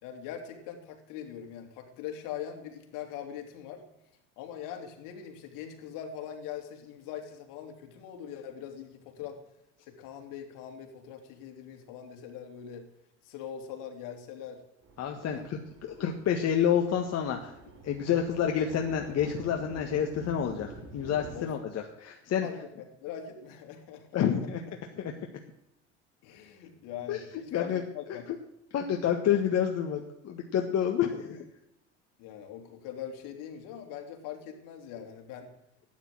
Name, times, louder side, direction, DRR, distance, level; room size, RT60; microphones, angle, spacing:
voice 1, 0.0-3.8 4.4-9.4 9.9-12.8 13.2-14.6 15.3-15.5 15.9-16.1 21.3-21.5 22.4-24.5 26.2-28.2 32.2-35.5, left 9 dB, 65° left, 4 dB, 3.1 m, -42 dB
sound 1, 14.8-21.4, right 2 dB, 40° right, 4.1 m, -48 dB
voice 2, 15.0-17.6 17.8-22.5 24.1-24.6 24.9-25.1 27.1-27.2 27.5-27.8 28.7-31.5, left 9 dB, 45° left, 3 dB, 1.8 m, -29 dB
13.0 x 9.9 x 7.8 m, 0.83 s
hypercardioid pair, 85°, 35 cm